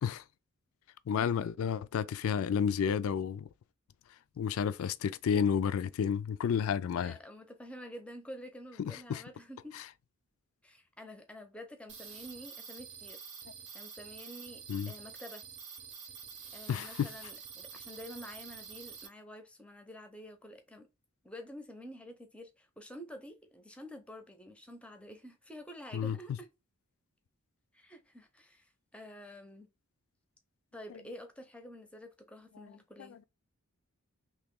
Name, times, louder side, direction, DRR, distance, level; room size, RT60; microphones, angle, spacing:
voice 1, 1.1-3.5 4.4-7.1 8.8-9.2 9.7-9.8 14.7-14.9 16.7-17.1 25.9-26.2 32.6-32.7, left 7 dB, 65° left, 0.3 m, -31 dB
voice 2, 6.5-9.8 10.6-13.3 13.7-15.4 16.5-20.9 21.2-26.5 27.7-29.7 30.7-33.2, equal, 5° left, 0.6 m, -49 dB
sound 1, 11.9-19.1, right 7 dB, 55° right, 0.8 m, -48 dB
3.0 x 2.9 x 3.6 m
head